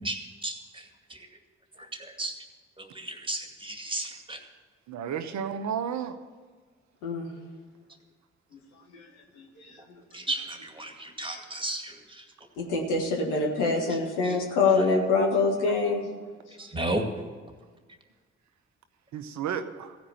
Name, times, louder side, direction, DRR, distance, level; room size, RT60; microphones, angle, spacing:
voice 1, 0.0-1.3 1.9-2.3 2.8-4.4 10.1-12.2 14.2-14.3 16.6-17.1, right 1 dB, 15° right, 4 dB, 2.2 m, -34 dB
voice 2, 4.9-6.2 19.1-20.0, right 8 dB, 70° right, 9 dB, 0.9 m, -32 dB
voice 3, 7.0-7.3 8.9-9.1 9.4-9.7 12.6-16.1, left 3 dB, 85° left, 0 dB, 1.7 m, -25 dB
15.5 x 5.2 x 8.8 m, 1.5 s
hypercardioid pair, 40°, 30 cm